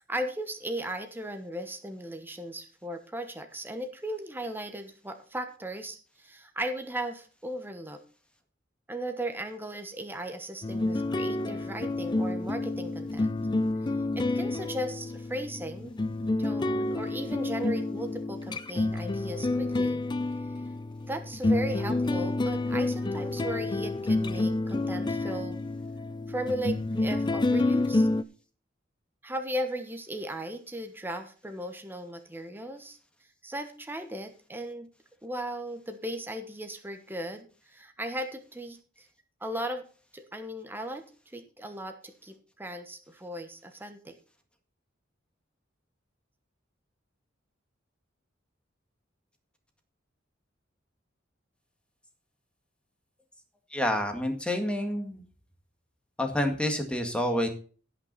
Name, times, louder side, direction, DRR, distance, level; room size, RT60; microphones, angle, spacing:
voice 1, 0.0-8.0 8.9-13.3 14.1-15.9 16.4-20.0 21.0-25.6 26.3-28.1 29.2-33.0 33.4-34.9 35.2-39.1 39.4-39.9 40.1-41.1 41.3-44.1, right 1 dB, 10° right, 6 dB, 1.1 m, -37 dB
sound 1, 10.6-28.2, left 2 dB, 25° left, 0.5 m, -29 dB
voice 2, 53.7-55.2 56.2-57.5, left 1 dB, 5° left, 4 dB, 1.8 m, -28 dB
17.0 x 6.0 x 4.1 m, 0.39 s
head